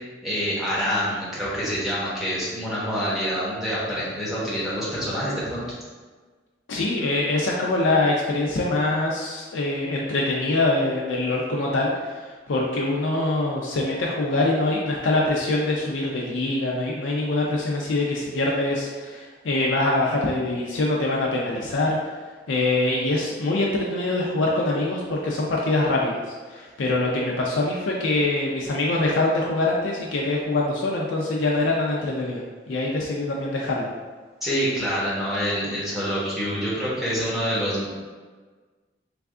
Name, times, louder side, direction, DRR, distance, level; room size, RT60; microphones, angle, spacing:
voice 1, 0.0-5.6 34.4-37.9, equal, ahead, -9 dB, 0.9 m, -26 dB
voice 2, 6.7-22.2 22.5-33.9, left 2 dB, 90° left, -2 dB, 0.4 m, -24 dB
3.3 x 2.3 x 3.6 m, 1.4 s
head